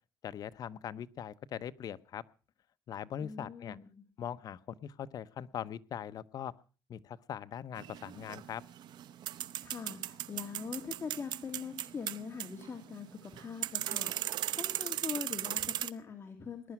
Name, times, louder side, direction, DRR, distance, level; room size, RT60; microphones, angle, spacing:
voice 1, 0.2-2.2 2.9-3.8 4.2-6.5 6.9-8.6, left 9 dB, 60° left, 13 dB, 0.8 m, -41 dB
voice 2, 3.2-4.0 9.6-16.7, left 5 dB, 35° left, 5 dB, 2.1 m, -43 dB
sound 1, 7.8-15.9, right 12 dB, 75° right, 0.7 m, -38 dB
20.0 x 11.0 x 5.9 m, 0.37 s
cardioid pair, 120°, 8 cm